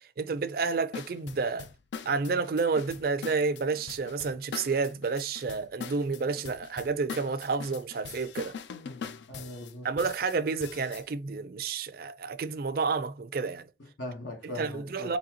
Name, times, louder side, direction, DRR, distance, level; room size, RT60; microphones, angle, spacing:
voice 1, 0.2-1.7 2.0-8.5 9.8-13.6 14.6-15.2, right 4 dB, 55° right, 0.4 m, -30 dB
sound 1, 0.9-11.0, left 6 dB, 75° left, 0.4 m, -42 dB
voice 2, 9.3-9.9 13.8-15.2, left 1 dB, 90° left, 1.2 m, -40 dB
4.0 x 2.8 x 2.8 m
head